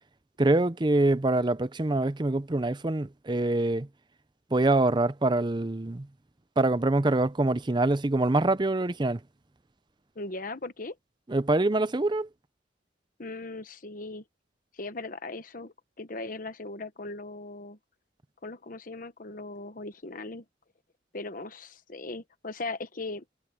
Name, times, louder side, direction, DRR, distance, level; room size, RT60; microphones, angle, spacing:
voice 1, 0.4-3.9 4.5-6.1 6.6-9.2 11.3-12.3, right 2 dB, 25° right, 0.6 m, -25 dB
voice 2, 10.1-11.0 13.2-14.2 14.7-17.8 18.4-20.4 21.1-23.2, left 2 dB, 45° left, 1.1 m, -38 dB
head